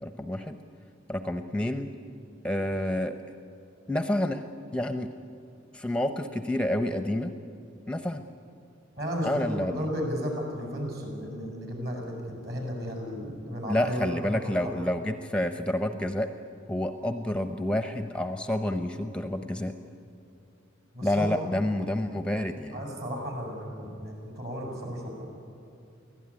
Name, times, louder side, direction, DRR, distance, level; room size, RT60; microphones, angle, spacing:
voice 1, 0.0-0.6 1.1-1.9 2.4-3.1 3.9-4.4 4.7-5.1 5.7-7.3 7.9-8.2 9.2-9.9 13.6-16.3 16.7-19.7 21.0-22.8, left 1 dB, 5° left, 7 dB, 0.7 m, -29 dB
voice 2, 9.0-14.7 20.9-21.4 22.7-25.2, equal, 55° right, 1 dB, 6.8 m, -34 dB
23.5 x 16.5 x 9.8 m, 2.7 s
head